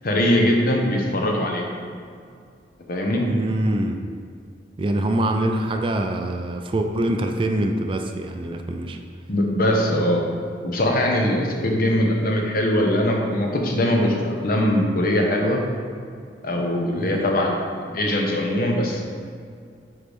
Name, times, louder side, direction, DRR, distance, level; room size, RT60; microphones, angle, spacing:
voice 1, 0.0-1.6 2.9-3.2 9.3-10.2 10.6-15.6 16.4-17.6 17.8-19.0, left 1 dB, 55° left, 0 dB, 0.9 m, -21 dB
voice 2, 3.3-4.0 4.8-9.0 11.6-11.8 17.0-17.3, right 1 dB, 30° right, 4 dB, 0.3 m, -24 dB
9.1 x 3.2 x 3.4 m, 2.2 s
head